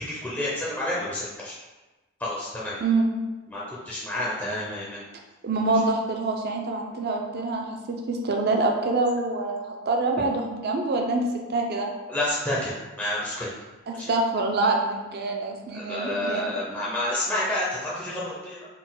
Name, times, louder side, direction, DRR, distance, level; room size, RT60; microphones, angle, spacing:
voice 1, 0.0-1.5 2.2-2.8 3.5-5.0 12.1-12.7 13.0-13.5 13.9-14.1 15.7-18.7, left 1 dB, 10° left, -7 dB, 0.5 m, -29 dB
voice 2, 2.8-3.1 5.4-11.2 11.5-11.9 14.1-16.4, right 3 dB, 50° right, 2 dB, 0.5 m, -25 dB
3.9 x 2.2 x 3.8 m, 1.2 s
head